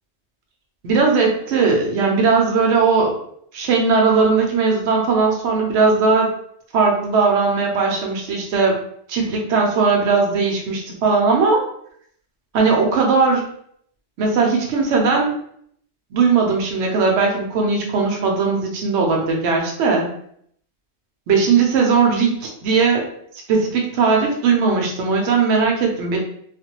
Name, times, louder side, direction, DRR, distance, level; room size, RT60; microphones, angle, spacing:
voice 1, 0.8-3.1 3.5-6.3 6.7-8.8 9.1-11.7 12.5-13.4 14.2-15.3 16.1-20.1 21.3-23.1 23.5-26.2, right 4 dB, 80° right, 0 dB, 0.9 m, -18 dB
2.4 x 2.1 x 2.8 m, 0.66 s
omnidirectional pair, 1.1 m